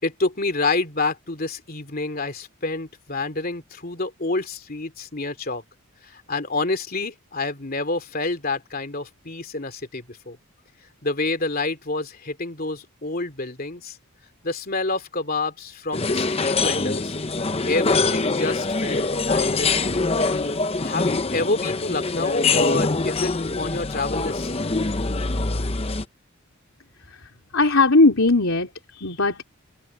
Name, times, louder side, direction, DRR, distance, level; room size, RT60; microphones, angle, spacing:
voice 1, 0.0-5.6 6.0-10.4 11.0-14.0 14.4-17.1 17.7-20.1 20.8-24.6, left 3 dB, 40° left, 2.9 m, -28 dB
sound 1, 15.9-26.0, left 3 dB, 25° left, 0.8 m, -24 dB
voice 2, 27.1-29.4, left 3 dB, 65° left, 3.5 m, -19 dB
head